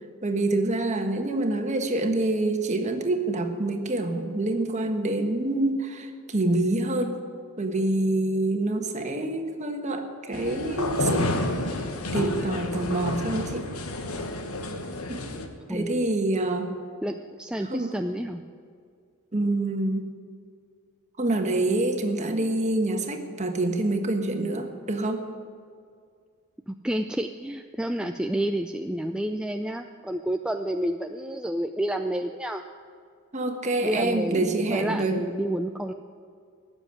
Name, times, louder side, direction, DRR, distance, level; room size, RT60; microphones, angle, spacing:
voice 1, 0.2-7.2 7.6-11.8 12.1-13.7 15.1-15.2 15.7-16.7 17.7-17.9 19.3-20.1 21.2-25.2 33.3-35.2, right 2 dB, 35° right, 5 dB, 1.4 m, -26 dB
sound 1, 10.3-15.5, left 2 dB, 80° left, 1.4 m, -30 dB
voice 2, 15.7-16.0 17.0-18.4 26.7-32.6 33.8-35.9, right 1 dB, 5° right, 5 dB, 0.4 m, -30 dB
17.0 x 7.1 x 9.6 m, 2.2 s
head